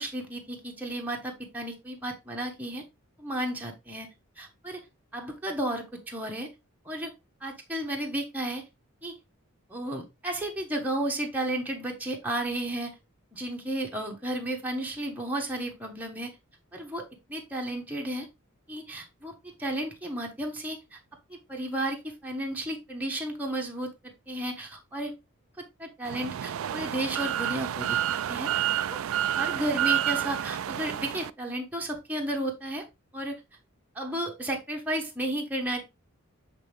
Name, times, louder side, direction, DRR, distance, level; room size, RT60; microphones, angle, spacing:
voice 1, 0.0-2.8 3.2-4.1 4.4-4.8 5.1-6.5 6.8-7.1 7.4-8.6 9.0-9.2 9.7-12.9 13.3-16.4 16.7-18.3 18.7-21.0 21.5-25.1 25.8-28.5 28.9-29.0 29.4-32.8 33.1-33.4 33.9-35.8, right 1 dB, 10° right, 0 dB, 1.1 m, -33 dB
sound 1, 26.1-31.3, right 11 dB, 65° right, 0.3 m, -29 dB
7.5 x 3.7 x 3.4 m, 0.23 s
head